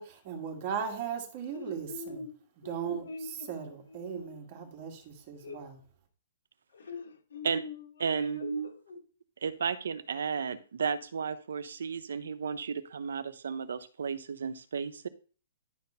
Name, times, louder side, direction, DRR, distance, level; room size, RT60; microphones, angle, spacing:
voice 1, 0.0-2.2 2.7-3.0 3.5-5.8, right 7 dB, 25° right, 2.0 m, -37 dB
voice 2, 1.5-2.3 2.6-4.8 5.4-5.6 6.7-9.0, left 4 dB, 75° left, 3.3 m, -44 dB
voice 3, 8.0-8.7 9.4-15.1, right 6 dB, 75° right, 0.8 m, -33 dB
10.5 x 4.2 x 5.5 m
hypercardioid pair, 175°, 0 cm